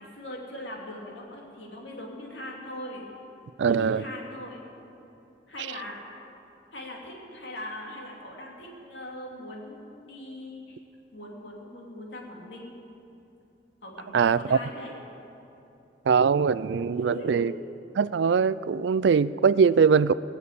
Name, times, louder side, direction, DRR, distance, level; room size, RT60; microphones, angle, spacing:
voice 1, 0.0-3.0 3.6-4.6 5.5-6.0 6.7-10.8 11.1-12.8 13.8-14.9 16.9-17.6, left 1 dB, 85° left, -2 dB, 2.8 m, -40 dB
voice 2, 3.6-4.0 14.1-14.6 16.1-17.5 18.0-20.1, right 6 dB, 80° right, 17 dB, 0.4 m, -22 dB
20.0 x 7.3 x 8.6 m, 2.9 s
head